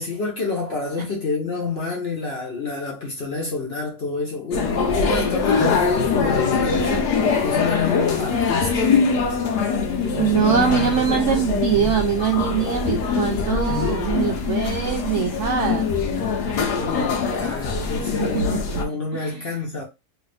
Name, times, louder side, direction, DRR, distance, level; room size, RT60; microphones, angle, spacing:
voice 1, 0.0-7.1 7.4-9.0 10.1-10.2 16.7-19.8, left 4 dB, 55° left, 0.7 m, -28 dB
sound 1, 4.5-18.8, left 5 dB, 85° left, 1.3 m, -23 dB
voice 2, 10.2-15.9 18.2-18.8 19.1-19.4, right 7 dB, 70° right, 0.7 m, -23 dB
sound 2, 10.4-16.1, left 2 dB, 5° right, 0.5 m, -33 dB
3.1 x 2.5 x 3.2 m
omnidirectional pair, 1.7 m